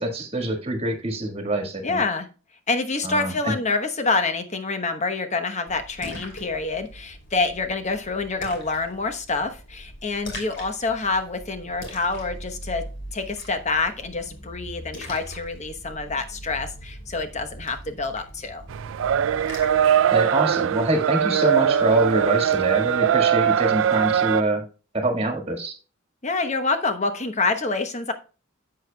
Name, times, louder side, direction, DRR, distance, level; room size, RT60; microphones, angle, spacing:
voice 1, 0.0-2.0 3.0-3.5 20.1-24.6 24.9-25.7, right 1 dB, 30° right, 5 dB, 1.7 m, -25 dB
voice 2, 1.8-2.3 2.7-12.8 13.1-18.6 26.2-28.1, left 3 dB, 35° left, 8 dB, 1.0 m, -27 dB
Splash splatter, 5.7-19.9, equal, 60° left, 2.8 m, -41 dB
sound 1, 18.7-24.4, right 9 dB, 70° right, 0.3 m, -21 dB
11.0 x 7.7 x 2.2 m, 0.34 s
head